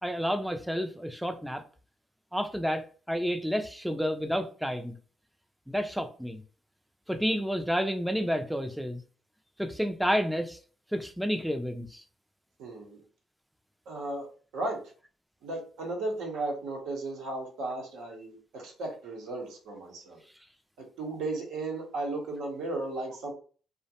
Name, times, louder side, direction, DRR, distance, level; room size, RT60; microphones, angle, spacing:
voice 1, 0.0-1.6 2.3-4.9 5.7-6.4 7.1-9.0 9.6-10.6 10.9-12.0, equal, ahead, 0.3 m, -30 dB
voice 2, 12.6-13.0 13.9-14.3 14.5-14.8 15.4-20.2 21.0-23.3, right 2 dB, 90° right, 0.8 m, -35 dB
2.4 x 2.1 x 2.7 m
cardioid pair, 90°, 0 cm